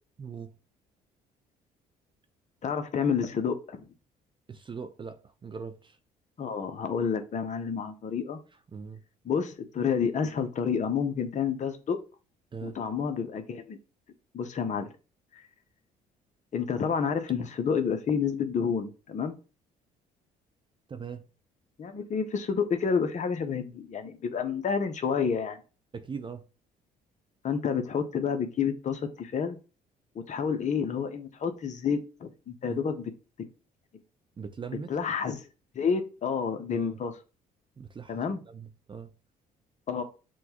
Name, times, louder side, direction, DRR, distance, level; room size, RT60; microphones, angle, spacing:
voice 1, 0.2-0.5 4.5-6.0 8.7-9.0 12.5-12.8 20.9-21.2 25.9-26.4 32.7-32.8 34.4-34.9 36.7-37.0 37.8-39.1, right 6 dB, 25° right, 0.5 m, -40 dB
voice 2, 2.6-3.9 6.4-8.4 9.2-12.0 12.6-13.8 14.3-14.9 15.3-15.4 16.5-19.3 21.8-25.6 27.4-29.6 30.2-33.0 34.9-35.5 35.7-37.1 38.1-38.4 39.9-40.0, left 6 dB, 40° left, 0.7 m, -29 dB
6.1 x 2.2 x 2.9 m
hypercardioid pair, 60°, 18 cm